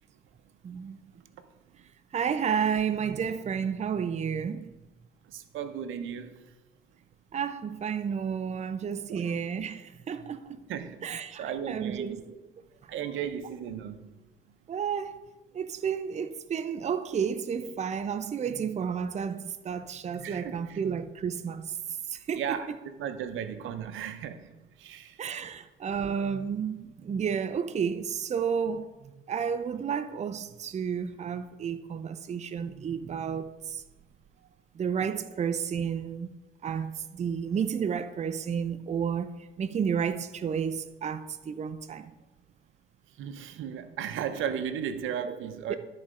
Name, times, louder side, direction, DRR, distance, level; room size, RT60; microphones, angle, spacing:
voice 1, 0.6-1.0 2.1-4.7 7.3-10.6 11.0-12.1 12.8-12.9 14.7-15.2 15.5-21.8 22.1-22.6 25.2-33.8 34.7-36.3 36.6-42.1 45.7-45.8, right 7 dB, 35° right, 0.5 m, -31 dB
voice 2, 5.2-6.4 9.1-9.3 10.7-11.0 11.4-12.2 12.9-14.0 20.2-20.8 22.3-25.2 43.2-45.8, right 8 dB, 80° right, 0.8 m, -35 dB
12.5 x 4.2 x 4.9 m
cardioid pair, 90°, 20 cm